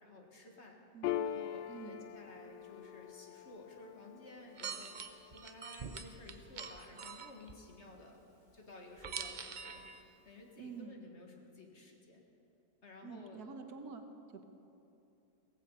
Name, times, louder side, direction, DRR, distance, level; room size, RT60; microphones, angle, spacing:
voice 1, 0.0-0.8 1.2-8.2 8.5-12.2 12.8-13.4, left 2 dB, 45° left, 1 dB, 1.9 m, -54 dB
Piano, 1.0-8.0, left 10 dB, 90° left, 1.2 m, -44 dB
voice 2, 1.7-2.0 10.6-11.0 13.0-14.0 14.3-14.4, right 5 dB, 70° right, 6 dB, 1.6 m, -47 dB
sound 1, 4.6-7.6 9.0-10.0, right 6 dB, 45° right, 0.6 m, -44 dB
17.0 x 15.5 x 5.5 m, 2.8 s
omnidirectional pair, 1.7 m